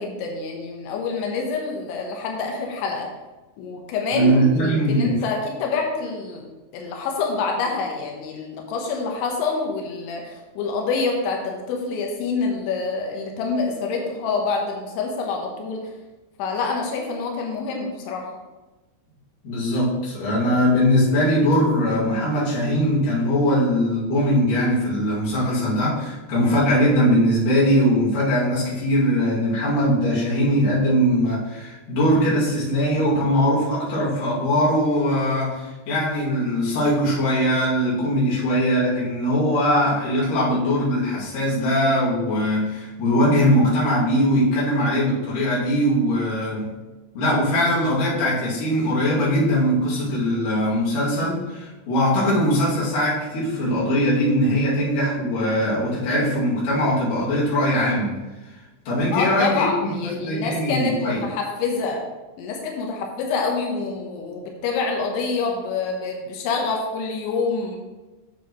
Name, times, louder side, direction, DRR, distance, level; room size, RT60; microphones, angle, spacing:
voice 1, 0.0-3.1 3.6-6.5 6.7-15.8 16.4-18.3 59.1-62.0 62.4-67.8, left 4 dB, 90° left, 1 dB, 3.3 m, -26 dB
voice 2, 4.1-5.2 19.4-46.7 47.1-58.1 58.9-61.2, equal, 55° left, -7 dB, 3.6 m, -21 dB
8.9 x 7.3 x 3.0 m, 1.1 s
omnidirectional pair, 5.2 m